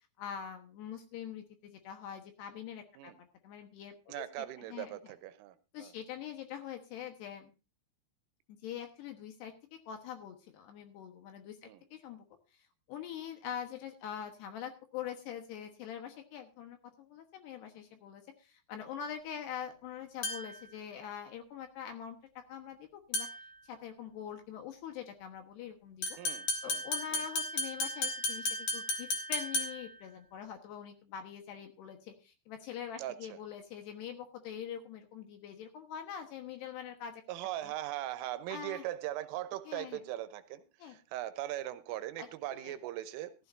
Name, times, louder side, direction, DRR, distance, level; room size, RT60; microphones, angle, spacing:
voice 1, 0.2-5.0 5.7-7.5 8.5-9.5 9.9-12.2 12.5-23.3 23.7-26.2 26.6-37.2 37.6-37.7 38.5-38.9 39.7-40.0 40.8-41.0 42.2-42.7, left 8 dB, 70° left, 6 dB, 3.0 m, -44 dB
voice 2, 4.1-5.9 11.6-11.8 26.2-26.8 27.1-27.3 33.0-33.2 37.3-43.3, right 14 dB, 90° right, 11 dB, 3.4 m, -40 dB
sound 1, 20.2-20.7 23.1-23.5 26.0-30.0, left 2 dB, 50° left, 2.5 m, -35 dB
15.0 x 14.0 x 2.6 m, 0.30 s
omnidirectional pair, 5.7 m